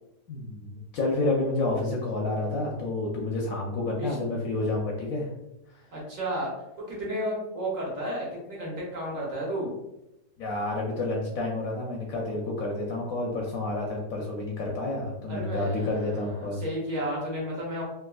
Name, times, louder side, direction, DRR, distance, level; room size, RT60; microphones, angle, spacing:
voice 1, 0.3-5.3 5.7-5.8 10.4-16.6, left 2 dB, 70° left, -1 dB, 0.9 m, -29 dB
voice 2, 5.9-6.5 6.9-9.7 15.3-17.8, equal, 55° right, -4 dB, 1.2 m, -32 dB
3.4 x 2.7 x 2.3 m, 0.89 s
omnidirectional pair, 1.8 m